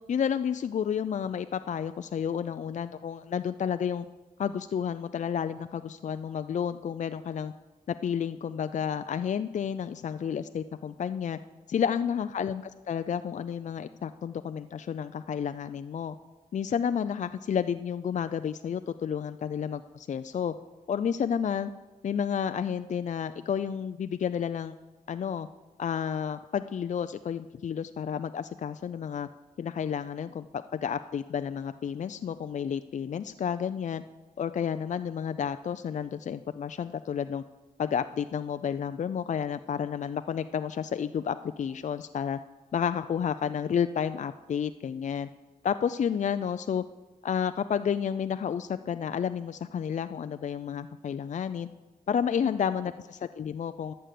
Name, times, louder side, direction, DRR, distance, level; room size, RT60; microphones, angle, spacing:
voice 1, 0.1-4.1 4.4-7.5 7.9-11.4 11.7-16.2 16.5-20.5 20.9-21.7 22.0-24.7 25.1-25.5 25.8-29.3 29.6-34.0 34.4-37.4 37.8-42.4 42.7-45.3 45.6-46.8 47.2-51.7 52.1-53.9, left 7 dB, 55° left, 10 dB, 0.4 m, -31 dB
11.0 x 6.6 x 7.6 m, 1.1 s
cardioid pair, 55°, 15 cm